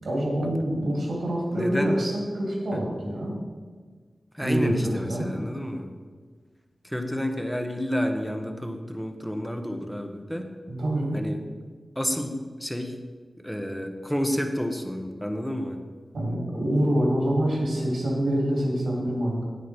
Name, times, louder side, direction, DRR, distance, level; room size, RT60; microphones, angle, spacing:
voice 1, 0.0-3.4 4.4-5.3 10.7-11.2 16.1-19.4, equal, 85° right, -3 dB, 3.2 m, -26 dB
voice 2, 1.5-1.9 4.3-5.9 6.8-10.5 11.1-11.4 11.9-13.0 13.4-15.8, equal, 5° left, 5 dB, 1.2 m, -30 dB
9.4 x 8.3 x 4.5 m, 1.5 s
cardioid pair, 55°, 0 cm